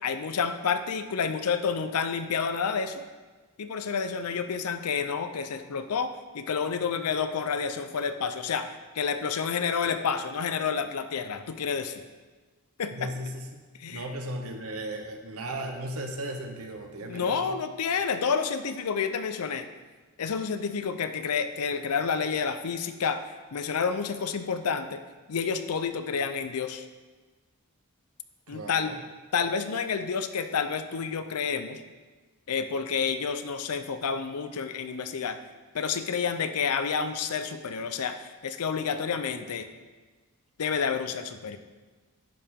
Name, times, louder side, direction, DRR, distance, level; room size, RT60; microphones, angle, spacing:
voice 1, 0.0-3.0 3.6-8.7 8.9-12.0 12.8-13.1 13.8-14.0 17.0-19.7 20.2-23.2 23.5-25.0 25.3-26.8 28.5-28.9 29.3-31.8 32.5-35.4 35.7-39.7 40.6-41.6, left 6 dB, 85° left, 9 dB, 0.5 m, -29 dB
voice 2, 12.9-13.6 13.9-17.6 28.5-29.0, right 1 dB, 75° right, 4 dB, 0.9 m, -36 dB
10.5 x 4.6 x 3.7 m, 1.3 s
head